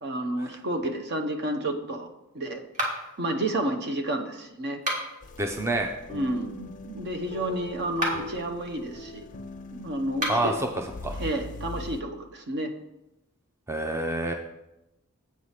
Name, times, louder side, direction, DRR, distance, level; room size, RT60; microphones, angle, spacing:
voice 1, 0.0-2.1 2.3-2.6 3.2-4.8 6.1-9.3 9.7-10.5 11.2-12.7, right 1 dB, 50° right, 6 dB, 0.9 m, -30 dB
sound 1, 2.7-3.2 4.7-5.3 7.9-8.4 10.1-10.6, equal, 35° right, 1.9 m, -31 dB
sound 2, 5.2-12.0, left 2 dB, 35° left, 0.5 m, -41 dB
voice 2, 5.4-5.9 10.3-10.5 11.0-11.1 13.7-14.3, right 2 dB, 10° right, 3 dB, 0.5 m, -27 dB
8.2 x 4.9 x 5.7 m, 0.90 s
head